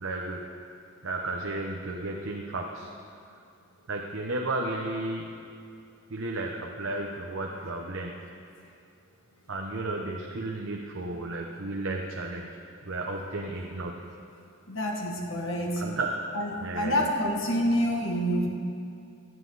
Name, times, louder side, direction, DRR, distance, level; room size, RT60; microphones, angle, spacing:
voice 1, 0.0-0.4 1.0-2.9 3.9-5.4 6.1-8.3 9.5-12.6 12.9-14.1 15.8-16.1 16.6-17.1, right 2 dB, 65° right, 0 dB, 0.9 m, -33 dB
voice 2, 14.7-15.8 16.3-18.5, equal, 65° left, 0 dB, 1.9 m, -27 dB
17.0 x 11.5 x 4.0 m, 2.4 s
head